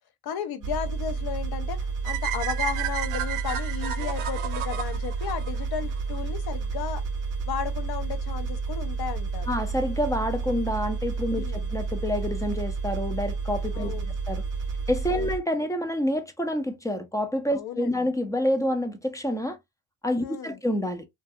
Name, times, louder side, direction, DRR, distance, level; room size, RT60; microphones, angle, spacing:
voice 1, 0.2-7.0 7.5-9.6 11.4-11.7 13.7-14.2 15.1-15.3 17.5-18.1 20.2-20.6, left 8 dB, 50° left, 0.7 m, -34 dB
sound 1, 0.6-15.4, right 4 dB, 40° right, 0.6 m, -31 dB
sound 2, 2.0-6.2, right 11 dB, 90° right, 0.6 m, -33 dB
voice 2, 9.5-13.9 14.3-14.4 14.9-19.6 20.0-21.1, left 1 dB, 10° left, 0.4 m, -28 dB
2.3 x 2.3 x 2.6 m
cardioid pair, 95°, 48 cm